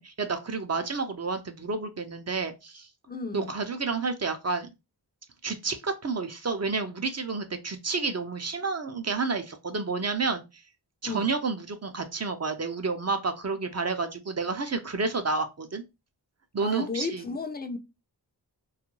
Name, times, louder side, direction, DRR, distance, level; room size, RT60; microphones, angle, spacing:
voice 1, 0.0-2.9 3.3-4.7 5.4-10.4 11.0-15.8 16.5-17.2, right 4 dB, 35° right, 0.5 m, -30 dB
voice 2, 3.1-3.5 11.0-11.3 16.6-17.8, left 4 dB, 20° left, 0.5 m, -33 dB
2.3 x 2.2 x 3.0 m
cardioid pair, 50°, 44 cm